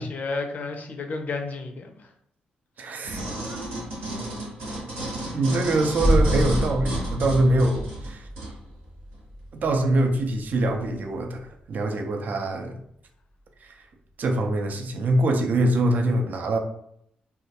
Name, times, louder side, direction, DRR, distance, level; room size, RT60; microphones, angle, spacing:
voice 1, 0.0-2.1, left 3 dB, 55° left, 5 dB, 0.4 m, -32 dB
voice 2, 2.8-3.2 3.5-3.6 5.3-8.3 9.6-12.8 13.6-13.8 14.2-16.6, right 2 dB, 60° right, 4 dB, 0.4 m, -24 dB
sound 1, 3.0-8.5 9.1-9.2, right 1 dB, 85° right, 1.0 m, -33 dB
sound 2, 6.0-11.7 12.0-12.1, equal, ahead, 0.4 m, -28 dB
2.3 x 2.1 x 2.7 m, 0.71 s
supercardioid pair, 50°, 3 cm